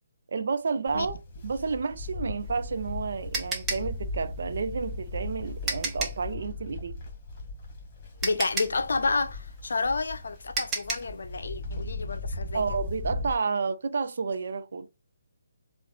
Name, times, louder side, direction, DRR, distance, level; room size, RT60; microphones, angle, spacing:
voice 1, 0.3-1.2 1.4-7.0 12.5-14.9, right 5 dB, 50° right, 0.5 m, -30 dB
Livestock farm animals working animals, 0.9-13.3, left 2 dB, 25° left, 1.7 m, -38 dB
sound 1, 2.4-6.3 7.7-7.8 8.2-11.2, right 3 dB, 10° right, 0.8 m, -33 dB
voice 2, 8.2-12.6, left 3 dB, 55° left, 0.6 m, -30 dB
7.4 x 2.6 x 2.3 m
figure-of-eight pair, 145°, 0 cm